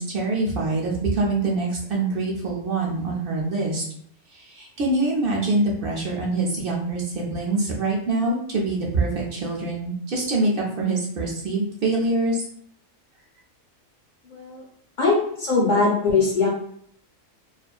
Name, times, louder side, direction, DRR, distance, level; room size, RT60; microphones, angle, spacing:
voice 1, 0.0-3.8 4.3-12.4, right 2 dB, 60° right, -3 dB, 0.6 m, -25 dB
voice 2, 14.3-14.6 15.0-16.5, left 4 dB, 50° left, -3 dB, 0.6 m, -21 dB
2.6 x 2.4 x 2.2 m, 0.65 s
omnidirectional pair, 1.4 m